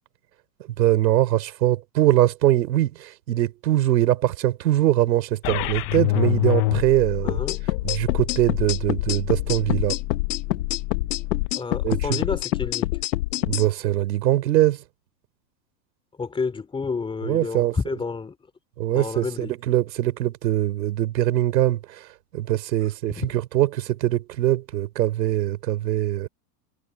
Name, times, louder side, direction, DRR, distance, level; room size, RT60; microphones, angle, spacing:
voice 1, 0.8-7.4 7.8-10.0 11.8-12.2 13.4-14.8 17.2-17.8 18.8-22.1 22.3-26.3, right 14 dB, 90° right, 3.4 m, -22 dB
sound 1, 5.4-11.5, left 19 dB, 30° left, 0.5 m, -28 dB
voice 2, 7.2-7.6 11.5-12.9 16.2-18.3 18.9-19.5 23.2-23.3, left 4 dB, 10° left, 2.7 m, -30 dB
sound 2, 7.3-13.7, left 17 dB, 90° left, 0.9 m, -26 dB
supercardioid pair, 155°, 49 cm